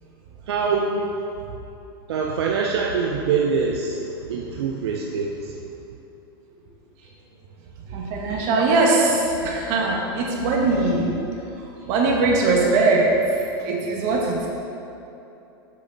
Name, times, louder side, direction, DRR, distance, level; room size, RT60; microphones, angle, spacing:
voice 1, 0.5-1.1 2.1-5.6 8.3-8.4, right 5 dB, 80° right, 0 dB, 0.7 m, -24 dB
voice 2, 7.9-13.1 13.6-14.5, right 3 dB, 50° right, -1 dB, 1.7 m, -21 dB
7.4 x 7.1 x 4.0 m, 2.9 s
hypercardioid pair, 120°, 13 cm